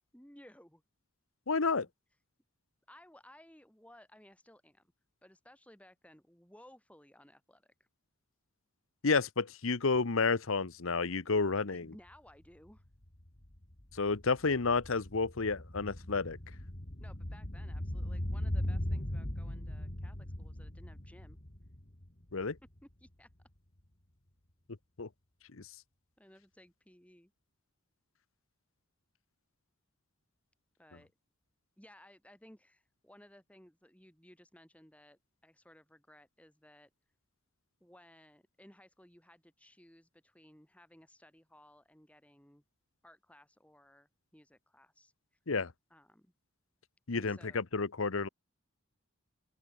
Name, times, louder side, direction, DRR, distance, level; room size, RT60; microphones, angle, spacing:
voice 1, 0.1-0.8 2.9-4.9 5.2-7.7 11.7-12.8 17.0-21.4 22.8-23.3 26.2-27.3 30.8-31.1 31.8-36.9 37.8-42.6 43.0-45.4 45.9-46.3 47.1-47.6, left 1 dB, 5° left, 4.4 m, -59 dB
voice 2, 1.5-1.9 9.0-11.9 13.9-16.4 22.3-22.6 25.0-25.1 25.5-25.6 45.5-45.7 47.1-48.3, left 4 dB, 65° left, 1.0 m, -31 dB
sound 1, 12.1-12.2 12.4-22.8 23.1-23.2, left 1 dB, 40° left, 2.5 m, -39 dB
open air
head